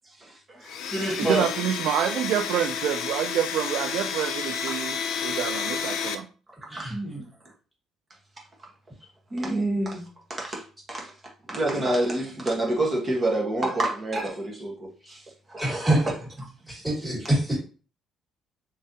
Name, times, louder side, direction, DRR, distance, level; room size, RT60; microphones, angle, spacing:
voice 1, 0.2-1.5 6.8-7.3 9.3-11.1 11.5-16.1 17.2-17.3, right 1 dB, 25° right, 1.3 m, -28 dB
Domestic sounds home sounds, 0.6-6.1, left 7 dB, 75° left, 0.5 m, -31 dB
voice 2, 1.2-6.3, right 10 dB, 80° right, 0.3 m, -27 dB
voice 3, 15.6-16.0 16.7-17.6, right 1 dB, 5° right, 2.0 m, -25 dB
3.7 x 3.2 x 2.8 m
cardioid pair, 130°, 0 cm